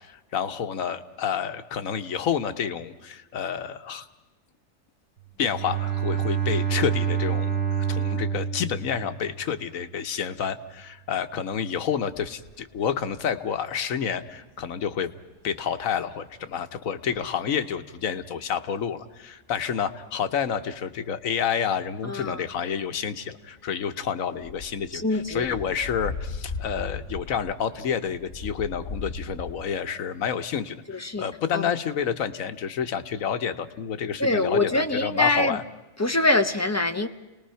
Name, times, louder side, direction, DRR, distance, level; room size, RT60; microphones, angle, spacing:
voice 1, 0.0-4.1 5.4-15.1 15.4-35.6, left 7 dB, 90° left, 1.4 m, -29 dB
Bowed string instrument, 5.4-9.7, right 8 dB, 55° right, 4.2 m, -27 dB
sound 1, 12.1-29.5, left 4 dB, 60° left, 4.1 m, -40 dB
voice 2, 22.0-22.4 24.9-25.5 30.9-31.3 31.5-31.7 34.2-35.6 36.0-37.1, left 2 dB, 15° left, 0.7 m, -24 dB
29.5 x 19.5 x 5.7 m
omnidirectional pair, 1.4 m